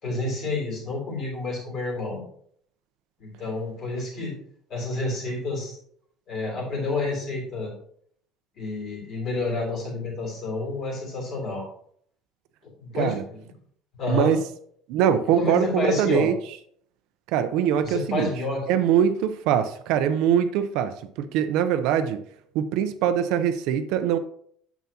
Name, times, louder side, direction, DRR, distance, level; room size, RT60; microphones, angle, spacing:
voice 1, 0.0-2.2 3.2-4.3 4.7-5.7 6.3-7.7 8.5-11.7 12.6-13.4 13.9-14.3 15.4-16.3 17.8-18.6, left 3 dB, 35° left, 0 dB, 3.3 m, -29 dB
voice 2, 14.1-14.4 14.9-16.4 17.3-18.3 18.7-22.2 22.5-24.2, right 9 dB, 60° right, 9 dB, 0.6 m, -23 dB
9.3 x 7.2 x 2.8 m, 0.62 s
cardioid pair, 175°, 0 cm